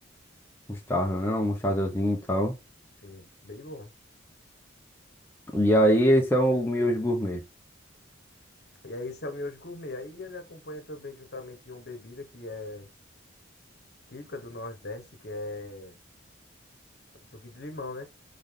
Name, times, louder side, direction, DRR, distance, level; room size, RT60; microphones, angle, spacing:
voice 1, 0.7-2.6 5.5-7.4, equal, 10° left, 0.7 m, -23 dB
voice 2, 3.0-3.9 8.8-12.9 14.1-16.0 17.3-18.1, left 2 dB, 55° left, 1.1 m, -39 dB
3.8 x 3.7 x 3.6 m
head